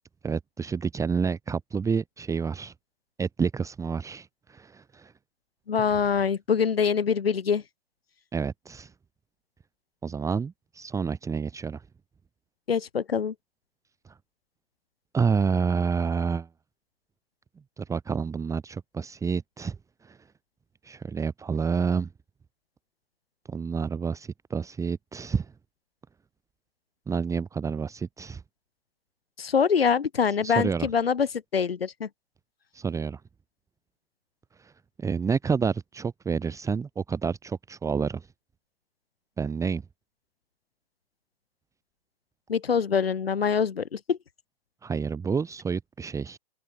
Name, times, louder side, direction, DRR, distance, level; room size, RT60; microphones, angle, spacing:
voice 1, 0.2-2.7 3.2-5.1 8.3-8.9 10.0-11.8 15.1-16.5 17.8-19.8 20.0-20.2 20.8-22.1 23.5-25.5 27.1-28.4 30.4-30.9 32.7-33.2 34.6-34.7 35.0-38.3 39.4-39.8 44.8-46.4, right 5 dB, 10° right, 1.9 m, -29 dB
voice 2, 5.7-7.6 12.7-13.3 29.4-32.1 42.5-44.2, left 6 dB, 85° left, 2.2 m, -24 dB
open air
hypercardioid pair, 130°, 29 cm